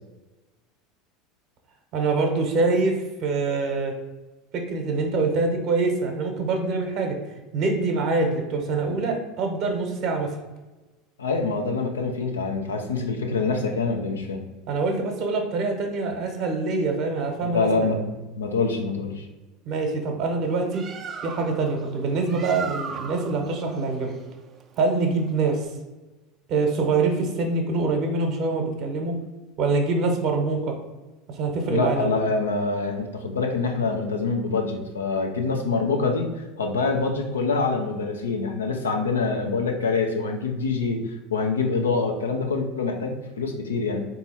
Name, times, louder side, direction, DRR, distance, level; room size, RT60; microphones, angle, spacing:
voice 1, 1.9-2.9 3.2-3.9 4.5-7.2 7.5-10.3 14.7-17.9 19.7-20.8 21.2-24.2 24.8-25.6 26.5-29.1 29.6-30.7 31.3-32.1, right 3 dB, 55° right, 4 dB, 0.9 m, -24 dB
voice 2, 11.2-14.4 17.4-19.3 31.7-41.0 41.3-44.0, left 4 dB, 85° left, 3 dB, 0.6 m, -25 dB
Bird, 20.5-25.7, right 5 dB, 35° right, 0.5 m, -38 dB
3.6 x 2.8 x 4.2 m, 1.1 s
hypercardioid pair, 80°, 0 cm